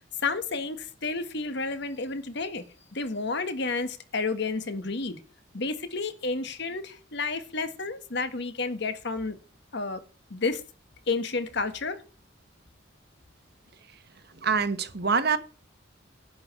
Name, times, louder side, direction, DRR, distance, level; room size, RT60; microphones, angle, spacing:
voice 1, 0.2-2.6 2.9-5.2 5.5-9.4 9.7-10.0 10.3-10.6 11.1-12.0, left 3 dB, 55° left, 1.5 m, -31 dB
voice 2, 14.4-15.4, right 5 dB, 50° right, 1.2 m, -25 dB
10.5 x 5.3 x 8.1 m
head